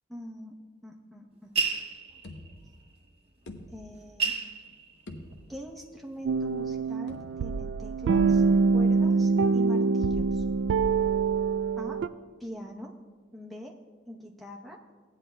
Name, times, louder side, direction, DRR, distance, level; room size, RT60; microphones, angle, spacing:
voice 1, 0.1-0.5 0.8-1.5 3.7-4.3 5.5-10.4 11.8-12.0 12.4-12.9 13.3-13.7 14.1-14.8, equal, ahead, 0 dB, 0.8 m, -43 dB
sound 1, 1.6-2.5 3.6-3.7 4.0-5.6 6.1-6.7, right 4 dB, 30° right, 0.8 m, -31 dB
sound 2, 2.2-3.0 3.5-4.3 4.7-4.8 5.1-5.8 7.1-7.7, left 1 dB, 80° left, 0.8 m, -47 dB
sound 3, 6.3-12.1, right 4 dB, 90° right, 0.3 m, -25 dB
15.5 x 9.4 x 2.2 m, 1.5 s
head